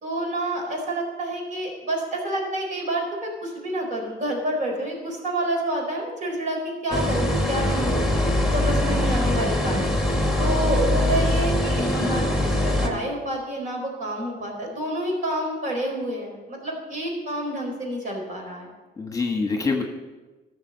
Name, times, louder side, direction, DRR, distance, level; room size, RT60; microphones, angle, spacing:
voice 1, 0.0-8.1 8.5-9.8 10.4-18.7, right 1 dB, 50° right, 1 dB, 4.3 m, -28 dB
sound 1, 6.9-12.9, left 1 dB, ahead, 1.9 m, -22 dB
voice 2, 11.8-12.4 19.0-19.8, left 4 dB, 20° left, 4 dB, 1.3 m, -26 dB
12.5 x 7.0 x 6.8 m, 1.2 s
cardioid pair, 110°, 17 cm